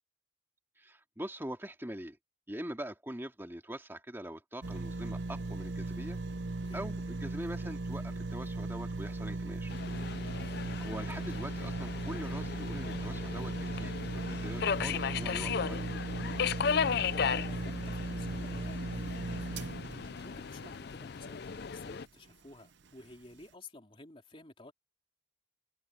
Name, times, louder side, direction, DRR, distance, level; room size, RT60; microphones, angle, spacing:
voice 1, 0.8-2.2 2.5-6.2 6.7-9.7 10.0-10.2 10.8-15.9, right 1 dB, 10° right, 2.2 m, -43 dB
sound 1, 4.6-21.8 22.3-22.4, right 2 dB, 60° right, 0.7 m, -38 dB
Subway metro underground, 9.7-22.1, left 6 dB, 55° left, 0.5 m, -36 dB
voice 2, 17.1-19.8 20.2-24.7, left 2 dB, 25° left, 3.0 m, -53 dB
head